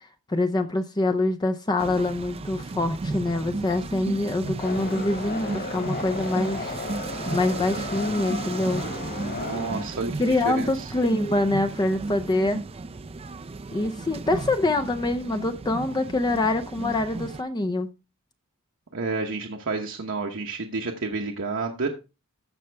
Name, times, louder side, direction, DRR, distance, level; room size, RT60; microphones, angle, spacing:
voice 1, 0.3-6.8 7.3-8.8 10.2-12.6 13.7-17.9, left 2 dB, 20° left, 0.5 m, -25 dB
sound 1, 1.8-17.4, right 3 dB, 30° right, 0.4 m, -34 dB
sound 2, 4.6-9.9, left 2 dB, 50° left, 2.8 m, -34 dB
voice 2, 9.3-10.9 18.9-21.9, right 3 dB, 60° right, 1.0 m, -30 dB
14.0 x 5.6 x 3.4 m
head